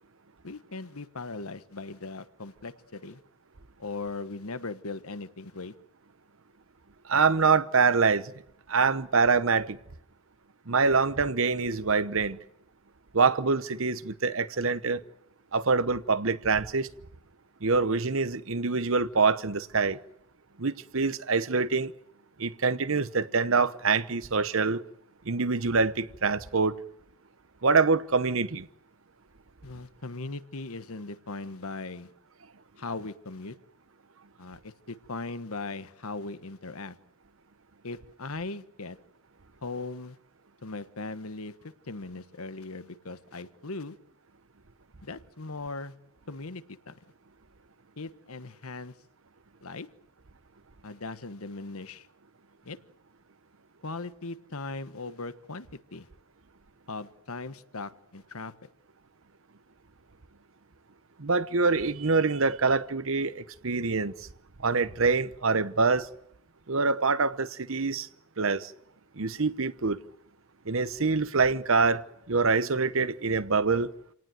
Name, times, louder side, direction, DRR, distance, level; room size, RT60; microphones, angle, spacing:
voice 1, 0.4-3.2 3.8-5.7 29.6-32.1 32.8-33.6 34.4-37.0 37.8-39.0 39.6-40.2 40.6-41.6 41.8-44.0 45.0-45.9 46.3-47.0 48.0-48.9 49.6-49.9 50.8-52.1 52.6-52.8 53.8-56.1 56.9-58.7, left 3 dB, 80° left, 1.3 m, -39 dB
voice 2, 7.1-8.3 8.7-9.8 10.7-12.4 13.1-15.0 15.5-16.9 17.6-20.0 20.6-21.9 22.4-24.8 25.3-26.8 27.6-28.7 61.2-64.3 64.6-66.1 66.7-68.1 68.4-68.7 69.2-70.0 70.7-73.9, right 4 dB, 70° right, 1.0 m, -25 dB
28.0 x 18.5 x 9.3 m
head